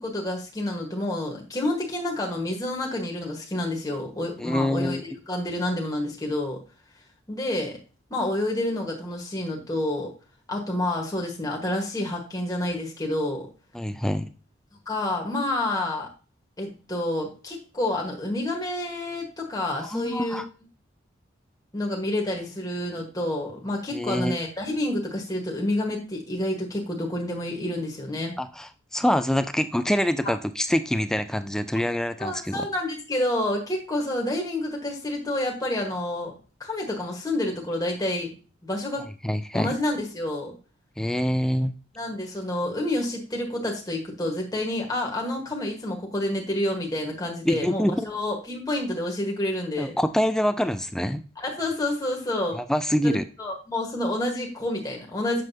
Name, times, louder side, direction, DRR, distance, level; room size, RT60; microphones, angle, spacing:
voice 1, 0.0-6.6 7.3-7.8 8.1-10.1 10.5-13.5 14.9-16.1 16.6-20.4 21.7-28.4 32.2-36.3 36.6-38.3 38.6-39.0 39.5-40.6 42.0-50.0 51.4-52.6 53.0-55.4, left 1 dB, 20° left, 0 dB, 1.2 m, -29 dB
voice 2, 4.4-5.0 13.7-14.3 19.7-20.5 23.9-24.4 28.4-32.7 39.2-39.7 41.0-41.7 47.5-48.1 49.8-51.2 52.5-53.2, equal, 5° left, 10 dB, 0.3 m, -25 dB
7.4 x 6.4 x 2.7 m, 0.35 s
head